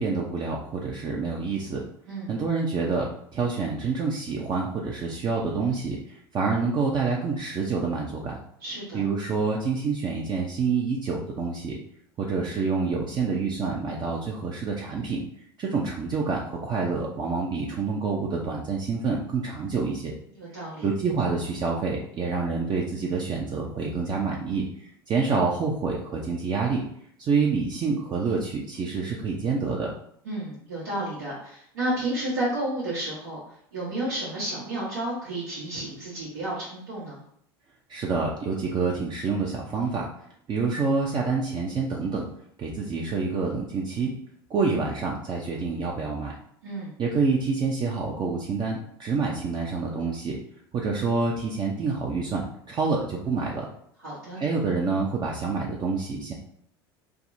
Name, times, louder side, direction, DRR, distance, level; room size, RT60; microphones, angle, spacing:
voice 1, 0.0-1.8 2.3-8.4 8.9-11.8 12.2-15.2 15.6-20.1 20.8-24.6 25.1-26.8 27.2-29.9 37.9-40.1 40.5-42.3 42.6-44.1 44.5-46.3 47.0-50.4 50.7-53.6 54.4-56.3, right 4 dB, 35° right, -2 dB, 0.5 m, -27 dB
voice 2, 2.1-2.4 8.6-9.0 20.3-20.9 30.2-33.4 33.7-37.2 46.6-47.0 54.0-54.4, right 1 dB, 80° right, -9 dB, 1.1 m, -31 dB
3.4 x 2.0 x 2.6 m, 0.66 s
hypercardioid pair, 75°, 13 cm